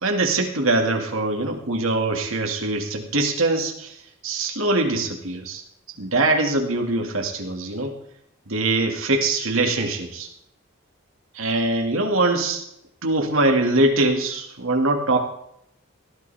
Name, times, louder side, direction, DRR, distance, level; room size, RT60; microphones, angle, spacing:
voice 1, 0.0-3.9 4.2-5.6 6.0-8.0 8.5-10.3 11.3-12.6 13.0-15.2, right 2 dB, 80° right, 2 dB, 2.1 m, -22 dB
18.5 x 12.0 x 3.4 m, 0.77 s
head